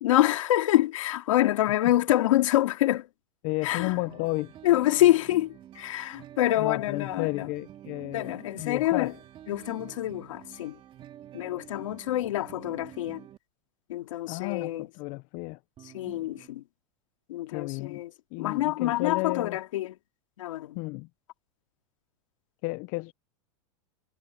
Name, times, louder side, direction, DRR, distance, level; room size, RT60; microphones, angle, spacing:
voice 1, 0.0-3.1 3.6-4.0 4.6-7.5 8.1-9.1 9.5-10.8 11.3-13.2 13.9-14.9 15.9-16.6 17.3-18.1 18.4-19.9 20.4-20.8, left 15 dB, 80° left, 2.5 m, -26 dB
voice 2, 3.4-4.5 6.6-9.1 14.3-15.6 17.5-18.0 18.3-19.6 20.8-21.1 22.6-23.1, left 25 dB, 50° left, 0.7 m, -32 dB
sound 1, 3.8-13.4 15.8-16.5, right 11 dB, 30° right, 2.7 m, -48 dB
supercardioid pair, 130°, 16 cm